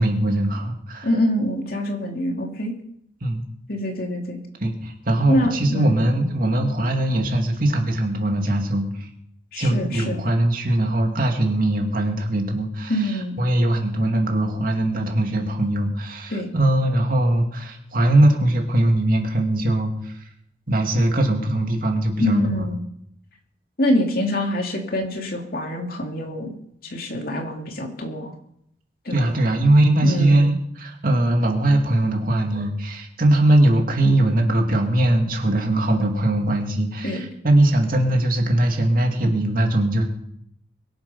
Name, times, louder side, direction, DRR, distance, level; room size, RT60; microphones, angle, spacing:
voice 1, 0.0-1.1 3.2-3.4 4.6-9.1 9.6-12.9 13.4-20.1 20.7-22.6 29.1-40.0, right 1 dB, 50° right, 2 dB, 2.5 m, -20 dB
voice 2, 1.0-2.7 3.7-4.4 5.3-6.0 9.5-10.2 12.9-13.4 16.3-16.5 22.2-22.8 23.8-26.5 26.8-28.3 29.0-29.3 30.0-30.5 37.0-37.2, left 1 dB, 55° left, 2 dB, 2.7 m, -25 dB
23.0 x 7.9 x 5.6 m, 0.72 s
head